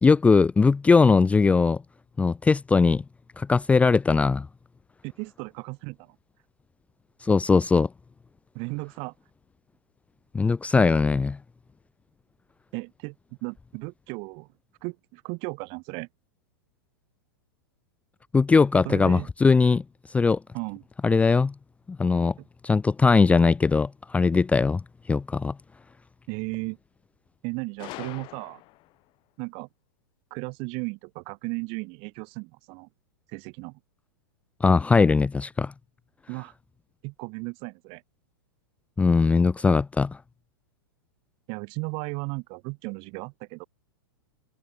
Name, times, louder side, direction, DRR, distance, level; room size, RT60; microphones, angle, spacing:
voice 1, 0.0-1.8 2.2-3.0 3.4-4.5 7.2-7.9 10.3-11.4 18.3-19.8 20.1-20.4 21.0-21.5 21.9-22.3 22.6-24.8 25.1-25.5 34.6-35.7 39.0-40.2, left 4 dB, 10° left, 0.8 m, -20 dB
voice 2, 5.0-6.2 8.5-9.1 12.7-13.2 13.4-14.5 14.8-16.1 18.8-19.3 20.5-20.8 22.4-22.5 26.3-26.8 27.4-28.6 29.4-29.7 30.3-32.9 33.3-33.8 36.3-36.5 37.0-38.0 41.5-43.6, right 31 dB, 45° right, 6.5 m, -35 dB
Gunshot gunfire, 27.8-29.0, left 21 dB, 40° left, 6.4 m, -42 dB
hypercardioid pair, 120°, 13 cm